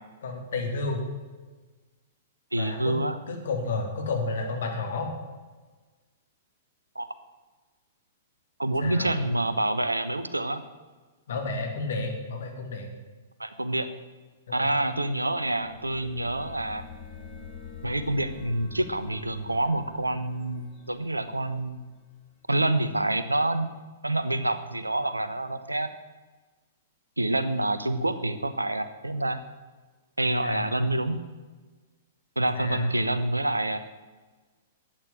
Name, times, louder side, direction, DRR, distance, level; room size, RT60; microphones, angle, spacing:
voice 1, 0.2-1.0 2.6-2.9 3.3-5.1 8.8-9.1 11.3-12.9 14.5-14.7 30.4-30.8 32.5-33.0, left 3 dB, 60° left, 3 dB, 2.9 m, -31 dB
voice 2, 2.5-3.2 6.9-7.1 8.6-10.6 13.4-13.9 14.5-16.8 17.8-21.8 22.5-23.7 24.0-25.9 27.2-29.4 30.2-31.2 32.4-33.8, right 1 dB, 85° right, 12 dB, 1.0 m, -27 dB
sound 1, 15.4-22.0, left 6 dB, 5° left, 5.3 m, -46 dB
13.0 x 9.0 x 7.8 m, 1.3 s
figure-of-eight pair, 105°, 0 cm